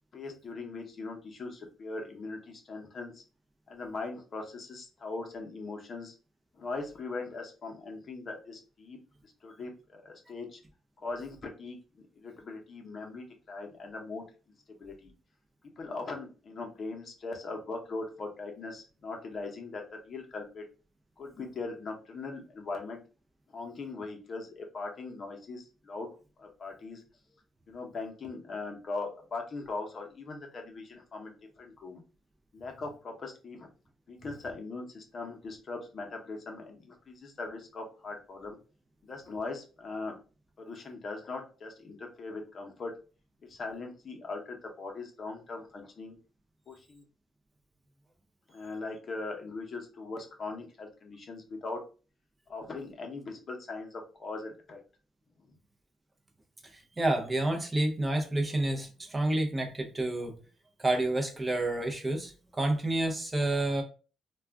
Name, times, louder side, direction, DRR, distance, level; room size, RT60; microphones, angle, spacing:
voice 1, 0.1-3.2 3.7-6.1 6.5-9.0 9.2-10.6 11.0-14.2 14.8-15.1 15.8-20.6 21.2-23.0 23.5-26.1 26.4-27.0 27.7-32.0 32.5-33.7 34.1-38.6 39.0-40.2 40.6-42.9 43.5-46.2 46.7-47.0 48.5-51.8 52.5-54.8, left 3 dB, 45° left, 2 dB, 0.7 m, -40 dB
voice 2, 56.7-60.3 60.8-63.8, right 2 dB, 25° right, 3 dB, 0.6 m, -29 dB
2.3 x 2.2 x 3.5 m, 0.35 s
cardioid pair, 90°, 0 cm